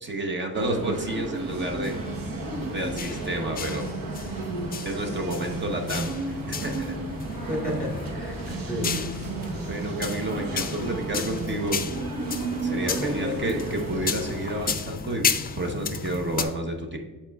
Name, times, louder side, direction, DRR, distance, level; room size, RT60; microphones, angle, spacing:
voice 1, 0.0-2.0 2.7-3.8 4.8-6.1 6.5-6.9 8.5-8.7 9.6-11.8 12.6-15.2 15.6-17.0, right 1 dB, 35° right, 3 dB, 0.9 m, -30 dB
sound 1, 0.5-14.8, right 3 dB, 90° right, 1.1 m, -33 dB
sound 2, 1.5-16.4, left 5 dB, 30° left, 0.5 m, -33 dB
voice 2, 7.5-8.9 12.7-13.4, left 1 dB, 5° left, -1 dB, 2.0 m, -32 dB
12.5 x 4.4 x 2.3 m, 1.2 s
wide cardioid pair, 130°, 33 cm